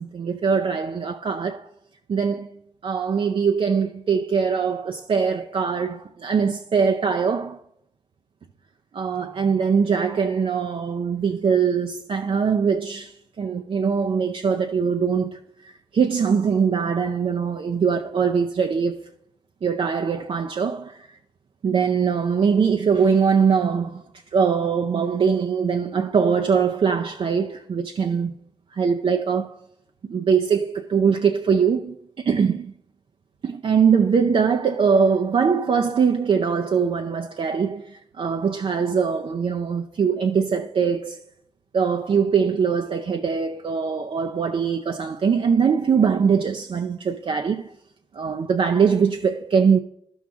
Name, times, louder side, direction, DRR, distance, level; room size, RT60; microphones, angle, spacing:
voice 1, 0.0-1.7 2.1-2.5 2.8-7.6 8.9-19.1 19.6-21.2 21.6-28.3 28.7-29.5 30.0-32.7 33.4-41.2 41.7-47.7 48.1-49.8, right 6 dB, 55° right, 0.5 m, -22 dB
11.0 x 6.3 x 3.6 m
supercardioid pair, 40°, 11 cm